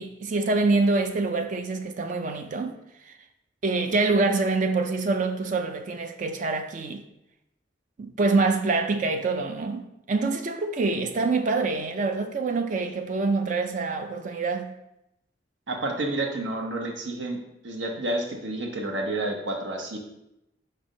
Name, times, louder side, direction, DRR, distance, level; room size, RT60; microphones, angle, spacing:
voice 1, 0.0-2.8 3.1-3.2 3.6-7.0 8.0-14.7, right 3 dB, 45° right, 0.4 m, -25 dB
voice 2, 15.7-17.4 17.6-20.0, right 2 dB, 80° right, 1.0 m, -30 dB
5.4 x 3.4 x 5.1 m
head